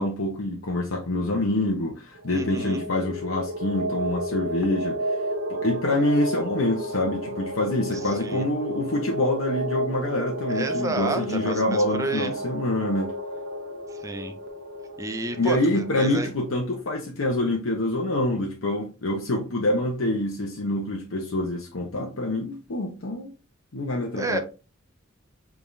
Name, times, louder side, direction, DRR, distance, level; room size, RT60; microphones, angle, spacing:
voice 1, 0.0-5.0 5.5-13.1 15.3-23.3 23.7-24.4, left 1 dB, 75° left, 0.8 m, -26 dB
sound 1, 2.2-16.5, right 1 dB, 60° right, 0.7 m, -32 dB
voice 2, 2.3-2.9 7.9-8.5 10.5-12.3 13.9-14.3 15.0-16.3 24.2-24.4, right 2 dB, 15° right, 0.5 m, -31 dB
5.1 x 3.5 x 2.6 m
head